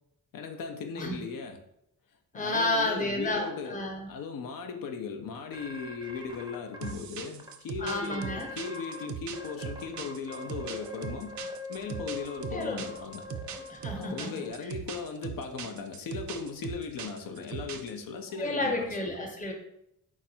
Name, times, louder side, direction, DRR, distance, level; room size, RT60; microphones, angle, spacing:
voice 1, 0.3-1.6 2.3-11.3 11.7-13.2 14.0-18.8, left 5 dB, 80° left, 4 dB, 0.6 m, -38 dB
voice 2, 2.3-4.1 7.8-8.5 12.5-12.8 13.7-14.3 18.4-19.5, left 2 dB, 25° left, 1 dB, 0.9 m, -31 dB
sound 1, 5.5-6.9 7.4-7.5 7.8-9.1 9.3-14.5, left 2 dB, 15° right, 0.5 m, -42 dB
sound 2, 6.8-18.0, right 8 dB, 60° right, 0.4 m, -40 dB
4.4 x 2.5 x 4.3 m, 0.81 s
wide cardioid pair, 125°, 33 cm